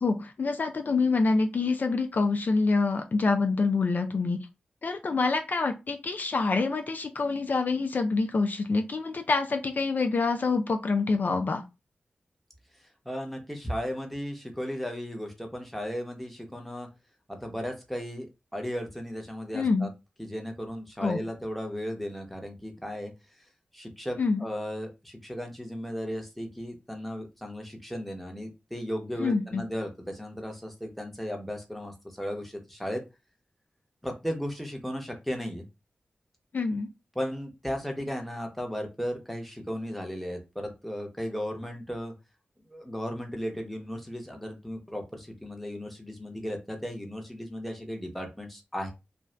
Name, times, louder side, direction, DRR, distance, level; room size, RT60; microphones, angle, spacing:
voice 1, 0.0-4.4 4.8-11.6 19.5-19.9 21.0-21.2 24.2-24.5 29.2-29.6 36.5-36.9, left 3 dB, 60° left, 6 dB, 0.4 m, -26 dB
voice 2, 13.0-16.9 17.3-18.3 18.5-19.9 20.2-23.1 23.7-33.0 34.0-35.6 37.1-42.1 42.7-48.9, equal, 5° left, 2 dB, 1.0 m, -35 dB
2.5 x 2.3 x 3.2 m, 0.26 s
cardioid pair, 50°, 3 cm